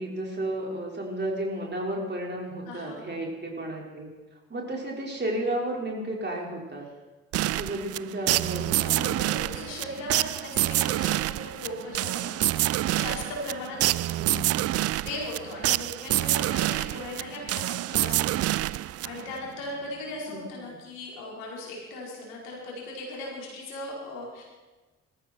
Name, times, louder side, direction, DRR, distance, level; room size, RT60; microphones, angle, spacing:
voice 1, 0.0-4.1 4.5-6.9 7.4-9.4 14.2-14.5 20.3-20.8, right 1 dB, 30° right, -1 dB, 5.3 m, -33 dB
voice 2, 2.6-3.0 8.9-14.2 15.0-24.4, left 2 dB, 70° left, -3 dB, 5.0 m, -38 dB
sound 1, 7.3-19.5, right 15 dB, 45° right, 0.5 m, -27 dB
21.5 x 14.5 x 4.6 m, 1.2 s
figure-of-eight pair, 40°, 35 cm